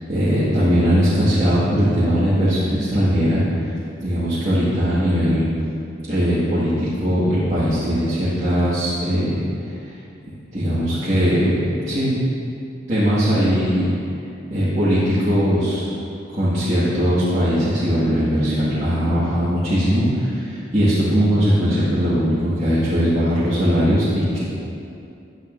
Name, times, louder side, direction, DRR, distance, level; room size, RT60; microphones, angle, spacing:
voice 1, 0.1-3.7 4.0-5.5 6.1-10.0 10.5-11.6 11.9-12.1 12.9-13.9 14.5-15.9 16.3-24.4, equal, 35° right, -13 dB, 1.9 m, -19 dB
10.5 x 10.5 x 2.7 m, 2.6 s
head